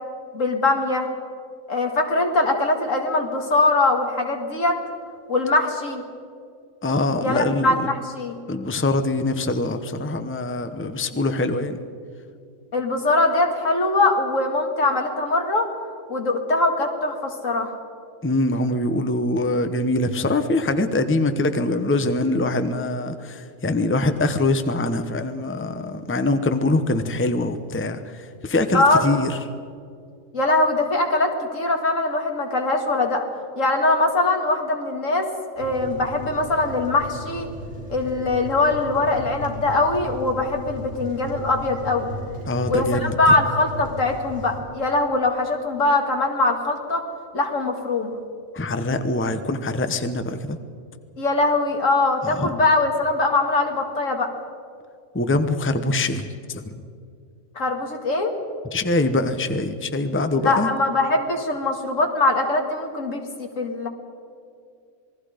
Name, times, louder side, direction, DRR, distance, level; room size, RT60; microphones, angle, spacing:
voice 1, 0.3-1.1 1.7-4.8 5.3-6.0 7.2-8.4 12.7-15.7 16.1-17.7 28.7-29.0 30.3-33.2 33.6-35.3 35.6-37.5 37.9-42.1 42.7-47.0 47.3-48.1 51.2-54.3 57.6-58.3 60.4-63.9, left 2 dB, 75° left, 3 dB, 2.5 m, -22 dB
voice 2, 6.8-7.9 8.5-11.8 18.2-29.4 42.5-43.1 48.5-50.6 52.2-52.5 55.1-56.7 58.7-60.7, left 2 dB, 10° left, 9 dB, 0.8 m, -23 dB
sound 1, 35.6-44.6, equal, 75° right, 5.5 m, -35 dB
27.5 x 20.0 x 5.1 m, 2.4 s
omnidirectional pair, 1.3 m